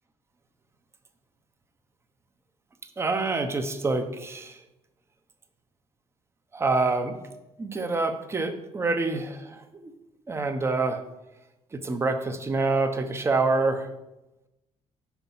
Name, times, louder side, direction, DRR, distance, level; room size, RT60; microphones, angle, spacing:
voice 1, 3.0-4.6 6.5-7.2 7.6-9.9 10.3-11.0 11.7-13.9, right 3 dB, 25° right, 7 dB, 0.7 m, -26 dB
5.8 x 4.7 x 5.5 m, 0.95 s
cardioid pair, 120°, 11 cm